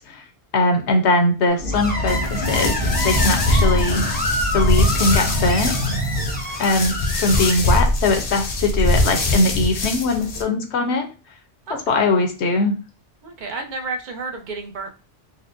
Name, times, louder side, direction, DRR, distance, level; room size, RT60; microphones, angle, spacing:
voice 1, 0.5-4.0 4.5-5.9 6.6-11.1 11.9-12.8, left 2 dB, 75° left, 4 dB, 0.9 m, -21 dB
sound 1, 1.6-6.8, left 1 dB, 30° right, 1.2 m, -26 dB
Screech, 1.7-7.8, left 1 dB, 10° left, 0.7 m, -28 dB
sound 2, 2.1-10.4, left 1 dB, 45° left, 0.5 m, -23 dB
voice 2, 11.7-12.1 13.2-14.9, right 3 dB, 50° right, 4 dB, 0.7 m, -31 dB
4.1 x 2.1 x 2.5 m, 0.33 s
omnidirectional pair, 1.2 m